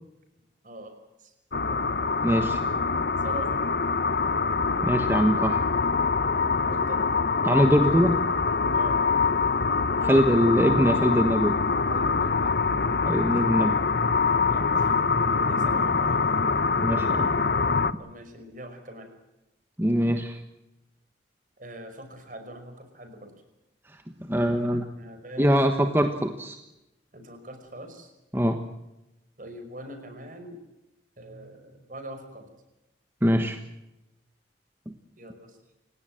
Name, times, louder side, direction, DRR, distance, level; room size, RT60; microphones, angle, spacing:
sound 1, 1.5-17.9, left 4 dB, 60° left, 0.9 m, -24 dB
voice 1, 2.2-2.6 4.8-5.6 7.4-8.2 10.0-11.6 13.1-13.7 16.8-17.3 19.8-20.4 24.2-24.8 25.4-26.6 28.3-28.6 33.2-33.6 34.9-35.0, equal, 10° right, 6 dB, 1.3 m, -22 dB
voice 2, 3.2-3.6 6.6-7.0 8.7-9.0 11.9-12.6 13.3-13.5 14.5-15.1 15.5-16.4 18.0-19.1 21.6-23.3 24.5-25.9 27.1-28.1 29.4-30.6 31.2-32.5 35.2-35.6, right 1 dB, 45° right, 7 dB, 5.3 m, -42 dB
29.5 x 17.0 x 7.7 m, 0.93 s
head